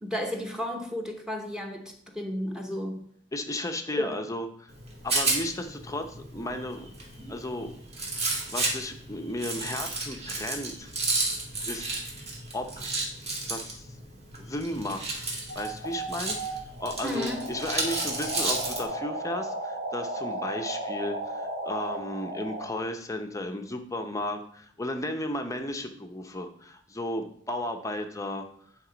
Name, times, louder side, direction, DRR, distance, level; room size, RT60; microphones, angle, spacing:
voice 1, 0.0-3.0 3.9-4.2 7.2-7.3 17.0-17.4, left 1 dB, 5° right, 2 dB, 0.9 m, -33 dB
voice 2, 3.3-4.7 5.0-6.9 7.3-7.7 8.5-10.9 11.7-11.9 12.5-12.9 13.5-13.9 14.4-15.2 15.5-28.5, left 1 dB, 15° left, 5 dB, 0.6 m, -34 dB
Rattle, 4.7-18.8, right 2 dB, 35° right, 2.0 m, -33 dB
sound 1, 15.5-22.6, right 1 dB, 50° right, 2.3 m, -35 dB
9.8 x 3.6 x 5.0 m, 0.62 s
head